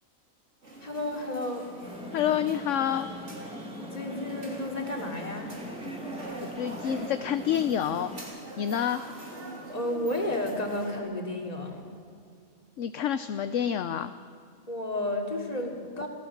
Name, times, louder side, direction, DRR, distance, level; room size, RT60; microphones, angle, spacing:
sound 1, 0.6-11.0, right 1 dB, 55° right, 3.9 m, -43 dB
voice 1, 0.8-1.6 3.8-5.5 9.7-11.9 14.7-16.1, left 1 dB, 25° left, 1 dB, 3.1 m, -32 dB
sound 2, 1.8-8.2, left 1 dB, 5° right, 1.5 m, -42 dB
voice 2, 2.1-3.1 6.5-8.1 8.6-9.0 12.8-14.1, left 9 dB, 65° left, 11 dB, 1.0 m, -28 dB
26.0 x 16.5 x 7.3 m, 2.4 s
omnidirectional pair, 1.5 m